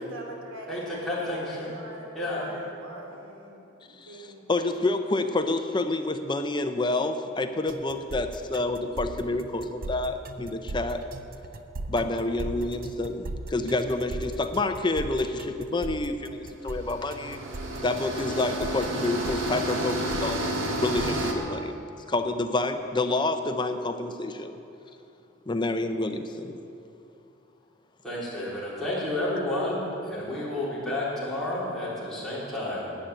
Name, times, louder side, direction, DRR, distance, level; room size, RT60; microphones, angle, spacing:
voice 1, 0.0-4.4, right 1 dB, 90° right, -1 dB, 2.7 m, -43 dB
voice 2, 0.7-1.7 2.2-2.5 28.0-33.0, left 1 dB, ahead, -9 dB, 3.8 m, -31 dB
voice 3, 4.0-11.0 11.9-17.4 17.8-20.5 20.8-21.7 22.1-24.6 25.5-26.6, left 2 dB, 20° left, 7 dB, 0.6 m, -28 dB
sound 1, 7.7-21.3, right 2 dB, 45° right, 0.7 m, -38 dB
sound 2, 16.7-21.3, right 1 dB, 65° right, 1.6 m, -31 dB
11.5 x 9.3 x 8.9 m, 2.8 s
head